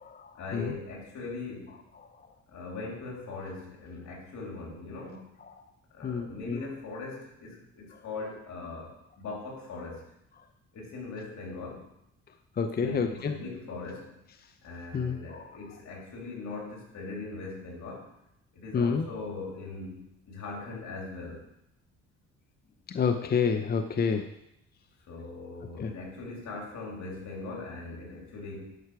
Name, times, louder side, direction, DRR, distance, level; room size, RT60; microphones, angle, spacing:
voice 1, 0.3-1.8 2.5-5.3 5.9-10.0 10.7-11.8 12.8-14.1 14.6-18.0 18.5-21.4 25.1-28.6, left 3 dB, 70° left, -2 dB, 3.2 m, -40 dB
voice 2, 6.0-6.6 12.6-13.3 14.9-15.4 18.7-19.0 22.9-24.2 25.8-25.9, left 6 dB, 30° left, 7 dB, 0.6 m, -28 dB
11.5 x 5.6 x 4.8 m, 0.83 s
cardioid pair, 90°, 30 cm